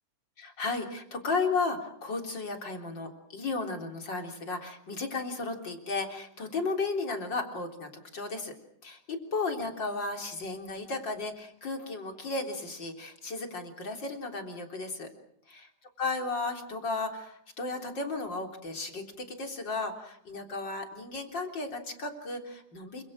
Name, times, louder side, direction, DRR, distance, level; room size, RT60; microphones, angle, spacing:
voice 1, 0.4-8.5 8.8-15.1 15.5-15.7 16.0-23.0, left 3 dB, 35° left, 4 dB, 4.1 m, -34 dB
29.0 x 26.5 x 6.4 m, 0.68 s
omnidirectional pair, 3.6 m